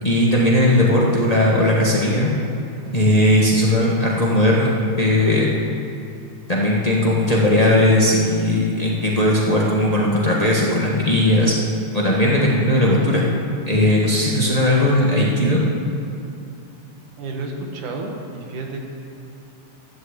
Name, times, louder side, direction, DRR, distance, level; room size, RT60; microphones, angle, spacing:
voice 1, 0.0-2.3 2.9-4.7 5.0-5.5 6.5-11.5 11.9-13.2 13.7-15.6, left 1 dB, 85° left, -4 dB, 0.3 m, -17 dB
voice 2, 17.2-18.8, right 2 dB, 75° right, 2 dB, 3.1 m, -31 dB
12.5 x 11.0 x 8.2 m, 2.7 s
omnidirectional pair, 3.5 m